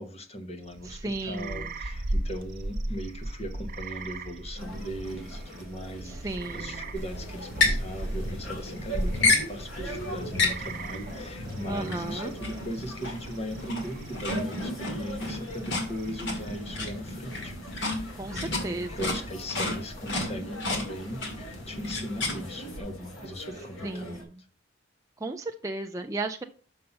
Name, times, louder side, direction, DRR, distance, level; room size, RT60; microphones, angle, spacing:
voice 1, 0.0-24.2, equal, 30° left, 6 dB, 1.2 m, -38 dB
sound 1, 0.6-16.9, right 1 dB, 45° right, 0.7 m, -38 dB
voice 2, 0.9-1.6 6.1-6.8 11.7-12.3 18.2-18.9 23.8-24.3 25.2-26.4, right 2 dB, 15° right, 3 dB, 0.4 m, -34 dB
sound 2, 4.5-24.2, right 1 dB, 85° left, 2.9 m, -43 dB
sound 3, 7.0-22.8, left 3 dB, 60° left, 2.3 m, -32 dB
6.5 x 5.7 x 5.4 m, 0.42 s
head